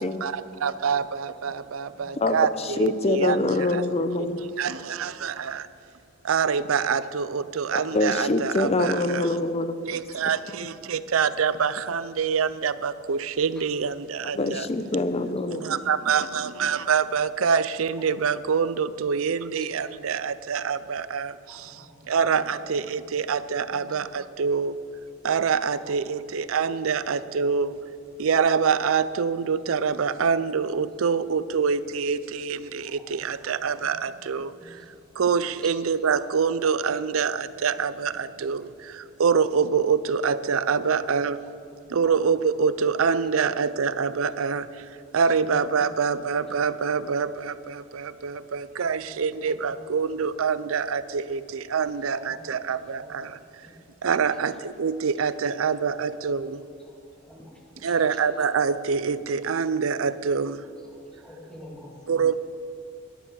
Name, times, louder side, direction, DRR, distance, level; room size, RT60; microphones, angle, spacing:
voice 1, 0.2-4.1 4.6-5.7 6.2-9.4 9.9-14.7 15.5-24.8 25.2-27.8 28.2-34.8 35.2-41.4 41.9-44.9 45.1-53.4 54.0-56.6 57.8-60.6 62.1-62.4, right 6 dB, 85° right, 15 dB, 0.5 m, -26 dB
voice 2, 2.1-4.4 7.7-9.8 14.2-15.6, left 2 dB, 30° left, 11 dB, 0.6 m, -25 dB
voice 3, 21.5-22.6 23.7-24.0 25.8-25.9 32.9-33.0 33.4-33.6 34.5-34.7 35.2-35.3 35.6-35.7 42.0-42.1 45.4-45.6 48.8-48.9 49.7-49.8 52.0-52.2 53.0-53.1 53.6-53.7 57.3-58.0 61.2-62.2, left 1 dB, 5° left, -3 dB, 2.3 m, -47 dB
12.5 x 9.9 x 7.0 m, 2.5 s
head